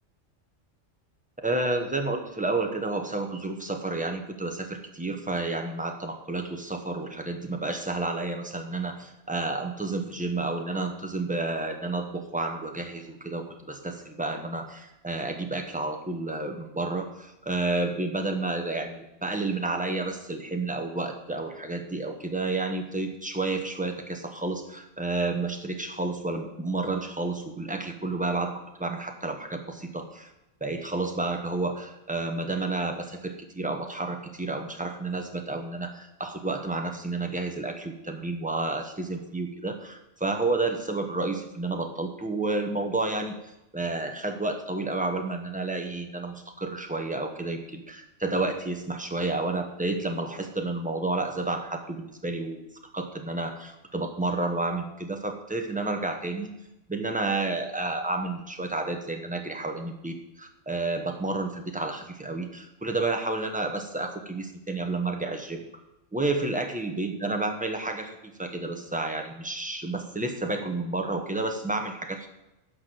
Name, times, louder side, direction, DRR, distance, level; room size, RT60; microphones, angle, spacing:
voice 1, 1.4-30.3 30.6-43.4 43.7-52.6 52.9-56.5 56.9-65.6 66.1-72.3, right 2 dB, 5° right, 4 dB, 1.1 m, -30 dB
12.5 x 4.9 x 7.8 m, 0.92 s
omnidirectional pair, 1.3 m